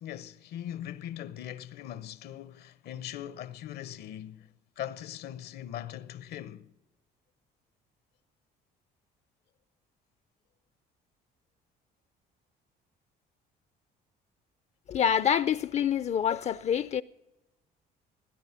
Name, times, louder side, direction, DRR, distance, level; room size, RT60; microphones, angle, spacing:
voice 1, 0.0-4.5 4.8-6.7, left 11 dB, 70° left, 0.7 m, -40 dB
voice 2, 14.9-17.0, left 8 dB, 40° left, 0.4 m, -26 dB
18.5 x 10.5 x 5.8 m
cardioid pair, 110°, 17 cm